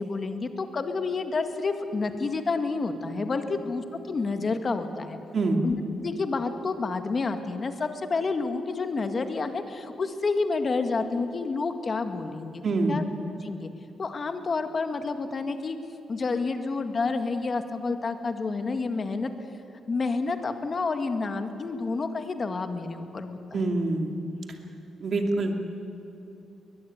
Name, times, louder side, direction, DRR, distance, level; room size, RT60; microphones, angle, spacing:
voice 1, 0.0-5.2 5.6-12.6 12.9-13.0 13.4-13.7 14.0-15.8 16.1-19.3 19.9-23.7, left 4 dB, 35° left, 7 dB, 1.9 m, -29 dB
voice 2, 12.6-12.9 23.5-24.1 25.0-25.6, right 3 dB, 45° right, 4 dB, 2.7 m, -25 dB
21.5 x 21.0 x 9.4 m, 2.9 s
cardioid pair, 140°, 0 cm